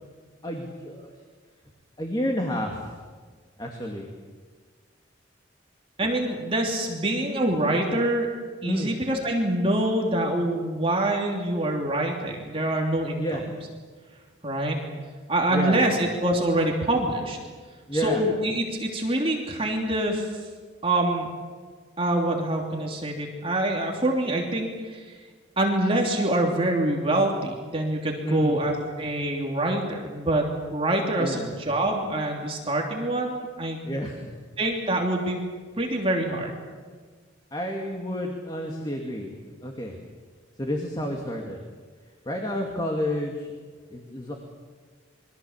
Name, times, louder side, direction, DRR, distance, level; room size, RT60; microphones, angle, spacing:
voice 1, 0.4-1.1 2.0-3.0 3.6-4.1 8.6-8.9 13.2-13.4 15.5-15.8 17.9-18.2 28.2-28.6 31.2-31.5 33.8-34.3 37.5-39.3 39.6-40.0 40.6-41.6 42.3-43.5 43.9-44.3, equal, 20° left, 1 dB, 2.3 m, -30 dB
voice 2, 6.0-8.3 8.6-13.2 14.4-14.8 15.3-17.4 17.9-20.3 20.8-21.3 22.0-25.0 25.6-33.8 34.6-35.4 35.8-36.6, right 1 dB, 30° right, 0 dB, 3.0 m, -25 dB
27.5 x 22.5 x 7.3 m, 1.5 s
head